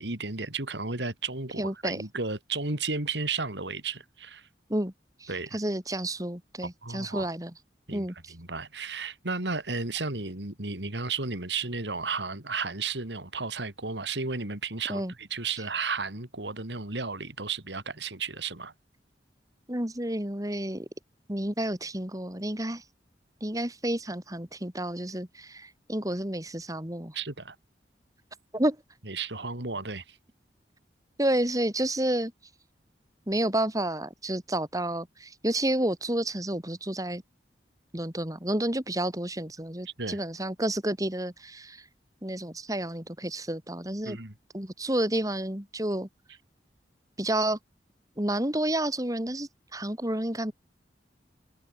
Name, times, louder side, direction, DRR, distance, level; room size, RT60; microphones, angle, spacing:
voice 1, 0.0-4.5 5.3-5.6 6.6-7.3 7.9-18.7 27.1-27.5 29.1-30.2 40.0-40.2 44.0-44.3, right 4 dB, 85° right, 3.2 m, -33 dB
voice 2, 1.6-2.0 4.7-4.9 5.2-7.5 7.9-8.3 14.9-15.1 19.7-20.9 21.3-22.8 23.4-27.1 28.5-28.8 31.2-32.3 33.3-37.2 37.9-41.8 42.2-44.2 44.5-46.1 47.2-47.6 48.2-50.5, right 1 dB, 20° right, 3.5 m, -30 dB
head